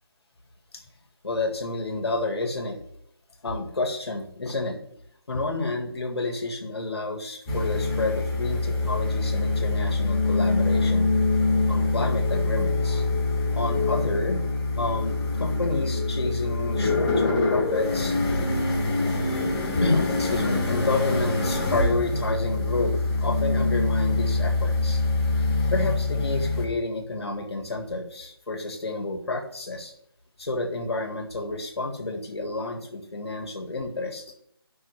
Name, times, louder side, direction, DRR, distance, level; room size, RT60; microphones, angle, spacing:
voice 1, 1.2-2.8 3.4-4.8 5.3-11.1 11.7-13.0 13.5-14.4 14.8-18.2 19.8-25.0 25.7-29.9 30.4-34.2, left 2 dB, 90° left, 3 dB, 1.8 m, -30 dB
sound 1, 7.5-26.7, left 3 dB, 15° left, 1.4 m, -24 dB
13.5 x 6.0 x 3.2 m, 0.72 s
hypercardioid pair, 175°, 13 cm